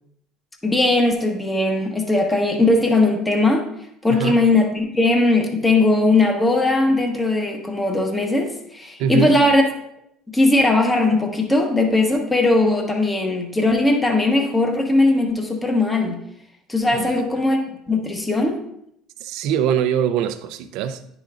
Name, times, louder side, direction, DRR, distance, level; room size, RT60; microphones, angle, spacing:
voice 1, 0.6-3.6 4.0-9.6 10.3-16.2 16.7-17.6 17.9-18.6, left 2 dB, 10° left, 3 dB, 1.1 m, -19 dB
voice 2, 4.1-4.4 9.0-9.4 16.9-17.4 19.2-21.1, right 8 dB, 70° right, 9 dB, 0.5 m, -23 dB
10.0 x 5.1 x 2.5 m, 0.77 s
cardioid pair, 120°, 0 cm